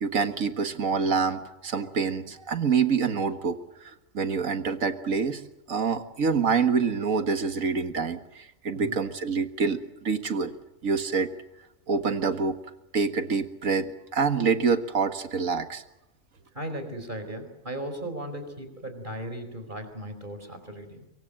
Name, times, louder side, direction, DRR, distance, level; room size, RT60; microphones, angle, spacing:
voice 1, 0.0-3.6 4.1-5.4 5.7-10.5 10.8-11.3 11.9-12.6 12.9-15.8, right 5 dB, 75° right, 8 dB, 2.0 m, -26 dB
voice 2, 16.5-21.0, right 1 dB, 35° right, 8 dB, 4.6 m, -37 dB
25.0 x 24.0 x 7.6 m, 0.92 s
omnidirectional pair, 1.4 m